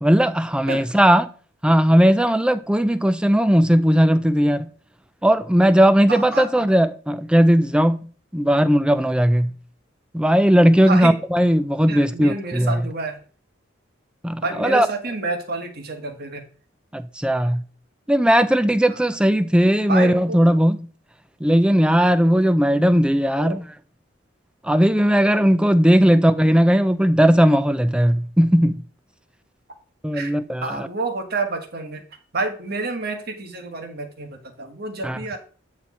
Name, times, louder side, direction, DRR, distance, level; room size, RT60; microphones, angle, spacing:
voice 1, 0.0-1.3 1.6-4.7 5.2-8.1 8.3-9.5 10.1-12.8 14.2-14.9 16.9-17.6 18.1-20.9 21.4-23.6 24.6-28.8 30.0-30.9 35.0-35.2, equal, 5° right, 0.4 m, -17 dB
voice 2, 6.1-6.7 10.9-11.2 11.9-13.2 14.4-16.5 18.9-19.0 19.9-20.4 23.4-23.6 30.1-30.3 30.6-32.0 32.3-35.4, right 3 dB, 55° right, 1.4 m, -29 dB
8.8 x 4.4 x 4.1 m
head